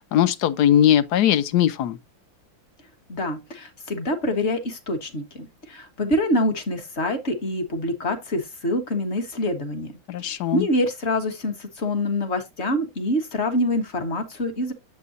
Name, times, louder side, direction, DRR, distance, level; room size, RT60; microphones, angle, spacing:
voice 1, 0.0-2.0 10.1-10.7, left 10 dB, 65° left, 1.1 m, -20 dB
voice 2, 3.1-9.9 10.2-14.7, left 1 dB, 35° left, 1.5 m, -26 dB
8.3 x 7.7 x 2.6 m
omnidirectional pair, 2.2 m